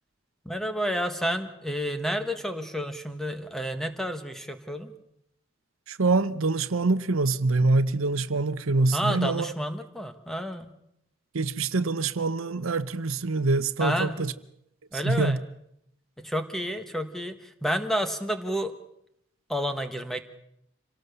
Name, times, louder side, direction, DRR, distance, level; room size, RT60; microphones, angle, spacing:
voice 1, 0.4-4.9 8.9-10.7 13.8-14.2 14.9-15.4 16.2-18.7 19.5-20.2, equal, ahead, 1.4 m, -30 dB
voice 2, 5.9-9.5 11.3-14.3 15.0-15.4, right 3 dB, 75° right, 0.9 m, -25 dB
26.5 x 18.0 x 6.8 m
head